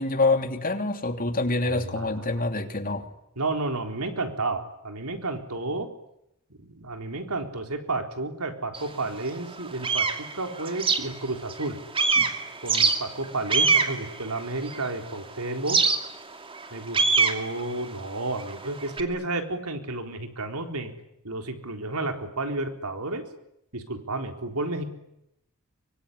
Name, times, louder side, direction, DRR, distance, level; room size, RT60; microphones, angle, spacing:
voice 1, 0.0-3.1 12.2-12.3, left 3 dB, 40° left, 6 dB, 3.1 m, -26 dB
voice 2, 1.6-2.2 3.4-5.9 6.5-11.8 12.6-15.8 16.7-20.9 21.2-23.2 23.7-24.8, right 2 dB, 85° right, 6 dB, 4.0 m, -31 dB
sound 1, 8.7-8.9 9.4-11.7 11.9-15.1 15.7-19.0, right 4 dB, 25° right, 2.6 m, -24 dB
24.5 x 24.0 x 9.9 m, 0.82 s
head